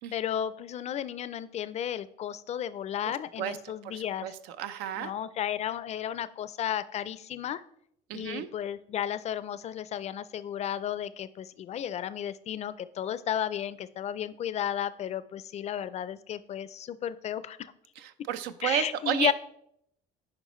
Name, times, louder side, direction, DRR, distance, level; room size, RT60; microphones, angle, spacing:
voice 1, 0.1-4.3 5.0-7.6 8.1-17.7 18.6-19.3, left 10 dB, 45° left, 15 dB, 0.4 m, -33 dB
voice 2, 3.0-5.1 8.1-8.5 18.0-19.3, right 10 dB, 85° right, 12 dB, 0.6 m, -33 dB
9.5 x 5.1 x 3.1 m, 0.72 s
cardioid pair, 105°, 16 cm